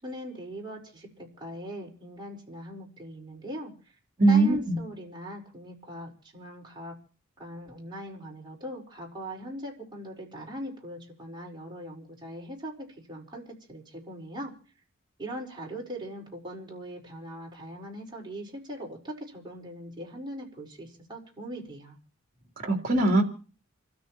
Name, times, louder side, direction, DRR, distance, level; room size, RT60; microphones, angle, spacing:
voice 1, 0.0-3.7 4.3-7.0 7.4-14.5 15.2-22.0, equal, 20° right, -2 dB, 4.7 m, -40 dB
voice 2, 4.2-4.8 22.6-23.2, right 2 dB, 45° right, 1 dB, 3.3 m, -21 dB
29.5 x 13.0 x 3.0 m, 0.39 s
head